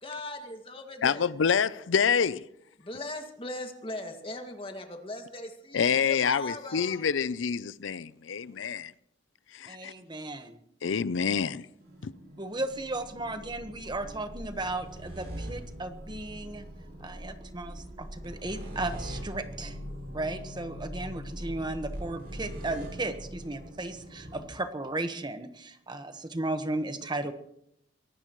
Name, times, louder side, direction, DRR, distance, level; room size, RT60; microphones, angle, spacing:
voice 1, 0.0-1.3 2.8-7.2, left 2 dB, 30° left, 2.1 m, -39 dB
voice 2, 1.0-2.4 5.7-8.8 9.6-9.9 10.8-11.7 12.0-12.1, left 6 dB, 90° left, 0.5 m, -27 dB
voice 3, 9.7-10.6 12.4-16.6 17.0-19.8 20.1-27.3, right 2 dB, 25° right, 1.2 m, -35 dB
sound 1, 11.8-24.5, equal, 50° right, 6.2 m, -42 dB
23.5 x 18.5 x 3.1 m
head